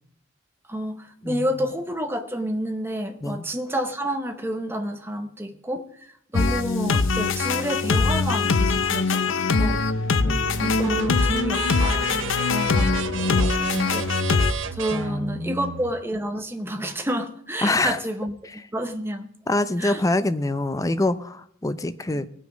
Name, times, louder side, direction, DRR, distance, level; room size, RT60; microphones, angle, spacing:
voice 1, 0.7-9.8 10.6-18.3 18.7-19.3 19.8-20.0, equal, 10° right, 6 dB, 0.9 m, -30 dB
sound 1, 6.3-14.5, left 4 dB, 70° left, 0.6 m, -22 dB
voice 2, 10.2-10.5 14.9-15.7 17.6-18.0 19.5-22.3, left 2 dB, 15° left, 12 dB, 0.5 m, -25 dB
sound 2, 10.3-15.9, right 5 dB, 65° right, 0.7 m, -33 dB
18.5 x 6.2 x 5.1 m, 0.65 s
head